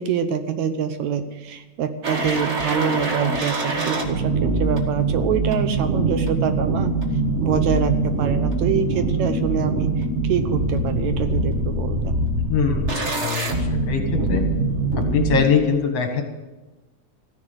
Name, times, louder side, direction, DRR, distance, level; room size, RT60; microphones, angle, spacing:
voice 1, 0.0-6.9 7.4-12.2, right 7 dB, 70° right, 9 dB, 2.1 m, -25 dB
sound 1, 2.0-15.4, right 2 dB, 35° right, 1.1 m, -23 dB
voice 2, 12.5-14.4 15.0-16.2, left 6 dB, 60° left, 4 dB, 2.4 m, -23 dB
14.5 x 10.5 x 8.0 m, 1.1 s
omnidirectional pair, 3.5 m